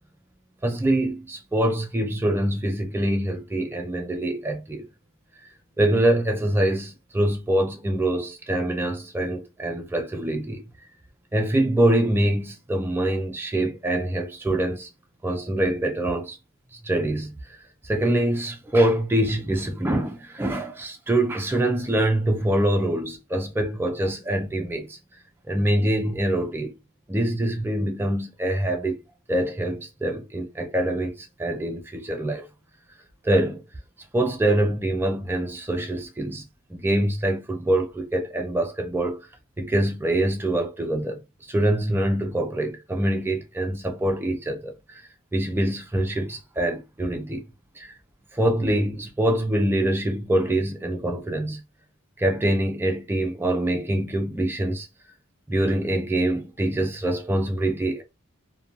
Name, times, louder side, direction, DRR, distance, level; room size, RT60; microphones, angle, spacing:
voice 1, 0.6-4.9 5.8-10.6 11.3-14.9 15.2-16.4 16.8-17.6 17.8-25.0 25.5-26.8 27.1-29.0 29.3-32.5 33.2-33.6 34.1-36.4 36.7-39.2 39.6-41.2 41.5-45.0 45.3-47.4 47.8-47.9 48.3-51.6 52.2-54.9 55.5-58.0, right 1 dB, 10° right, 0.3 m, -24 dB
2.5 x 2.2 x 2.7 m
head